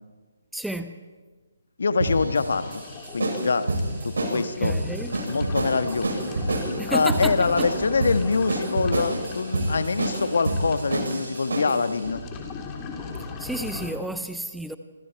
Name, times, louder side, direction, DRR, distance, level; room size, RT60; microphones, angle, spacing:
voice 1, 0.5-1.0 4.3-5.1 6.8-7.7 13.4-14.8, right 1 dB, ahead, 9 dB, 0.8 m, -32 dB
voice 2, 1.8-2.8 3.1-3.7 4.0-4.7 5.3-6.2 6.9-12.2, left 4 dB, 60° left, 11 dB, 1.3 m, -24 dB
sound 1, 2.0-11.9, right 2 dB, 60° right, 7.4 m, -28 dB
sound 2, 2.5-13.9, left 4 dB, 20° left, 3.2 m, -39 dB
28.5 x 26.0 x 4.7 m, 1.4 s
figure-of-eight pair, 140°, 0 cm